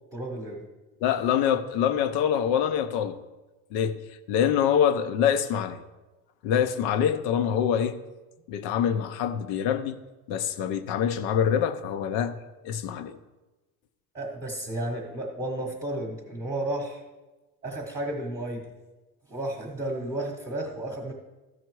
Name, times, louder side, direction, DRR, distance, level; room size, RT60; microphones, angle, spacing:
voice 1, 0.1-0.6 14.1-17.0 17.6-18.7 19.3-21.1, right 1 dB, 10° right, 1.0 m, -32 dB
voice 2, 1.0-3.2 3.7-4.0 4.3-5.8 6.4-8.0 8.5-10.0 10.3-12.4 12.6-13.2, left 8 dB, 85° left, 0.8 m, -25 dB
14.0 x 5.8 x 4.6 m
cardioid pair, 165°, 30 cm